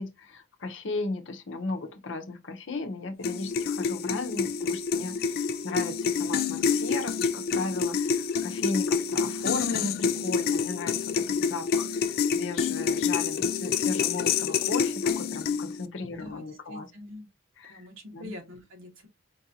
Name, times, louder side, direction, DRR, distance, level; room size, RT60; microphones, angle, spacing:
voice 1, 0.0-16.9 17.6-17.8 18.1-18.3, left 3 dB, 65° left, 0.7 m, -35 dB
sound 1, 3.2-15.9, left 6 dB, 45° left, 0.3 m, -28 dB
voice 2, 16.1-17.3 17.7-19.1, left 1 dB, 80° right, 1.6 m, -44 dB
4.6 x 2.6 x 2.7 m
head